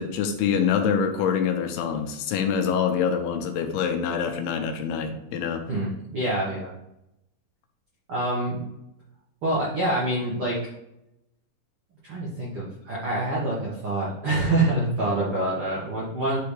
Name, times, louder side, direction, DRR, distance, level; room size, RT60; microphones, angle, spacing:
voice 1, 0.0-5.7, left 7 dB, 80° left, 5 dB, 2.6 m, -25 dB
voice 2, 5.7-6.7 8.1-8.7 9.4-10.6 12.0-16.4, right 2 dB, 75° right, -6 dB, 1.2 m, -26 dB
10.0 x 3.4 x 3.2 m, 0.87 s
omnidirectional pair, 4.6 m